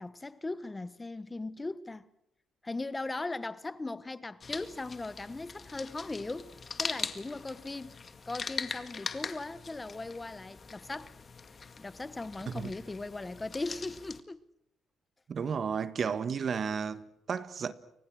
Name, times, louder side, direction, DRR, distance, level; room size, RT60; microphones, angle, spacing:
voice 1, 0.0-2.1 2.6-6.5 6.8-8.0 8.2-11.2 11.8-14.4, left 2 dB, 20° left, 1.2 m, -38 dB
sound 1, 4.4-14.2, left 5 dB, 40° left, 2.0 m, -42 dB
voice 2, 15.3-17.0 17.3-17.7, right 6 dB, 50° right, 1.5 m, -32 dB
30.0 x 25.5 x 6.3 m
cardioid pair, 90°, 0 cm